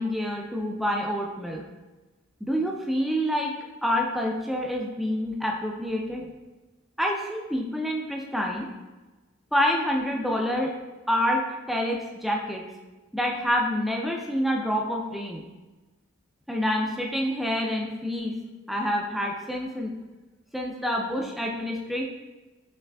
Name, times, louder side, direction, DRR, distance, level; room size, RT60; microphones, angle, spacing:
voice 1, 0.0-1.6 2.4-3.5 3.8-6.3 7.0-8.7 9.5-10.7 11.1-12.6 13.1-15.4 16.5-18.4 18.7-19.9 20.5-22.1, equal, ahead, 0 dB, 0.3 m, -27 dB
5.8 x 3.2 x 2.2 m, 1.2 s
head